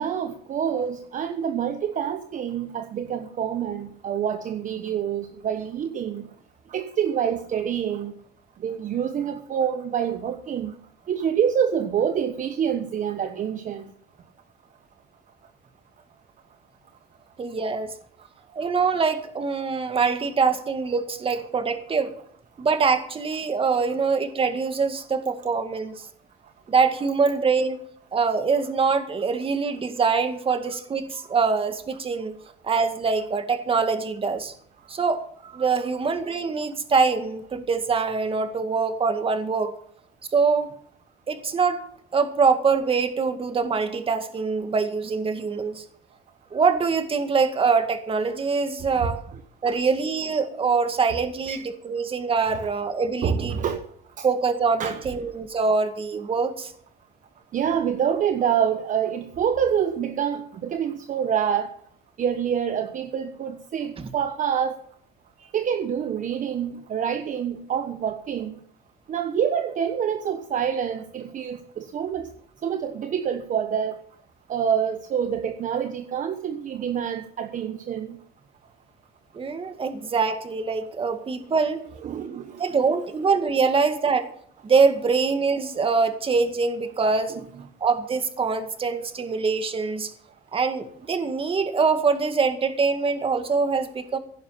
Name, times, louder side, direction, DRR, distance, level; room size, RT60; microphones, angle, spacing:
voice 1, 0.0-6.3 6.7-8.1 8.6-10.8 11.1-13.9 49.0-49.1 49.7-49.8 51.5-51.6 53.2-53.8 54.2-54.3 54.8-55.0 57.5-61.7 62.2-64.8 65.4-68.5 69.1-72.3 72.6-74.0 74.5-78.2 82.0-82.6 87.3-87.4, right 8 dB, 50° right, 7 dB, 1.2 m, -26 dB
voice 2, 17.4-17.9 18.5-22.1 22.6-26.0 26.7-27.8 28.1-32.3 32.6-34.5 34.9-39.7 40.3-40.7 41.3-41.8 42.1-45.8 46.5-49.2 49.6-53.8 54.2-56.7 64.0-64.1 79.3-81.8 82.2-84.3 84.6-87.4 87.8-90.1 90.5-94.2, right 5 dB, 35° right, 8 dB, 2.1 m, -24 dB
15.5 x 11.0 x 5.8 m, 0.62 s
cardioid pair, 110°, 17 cm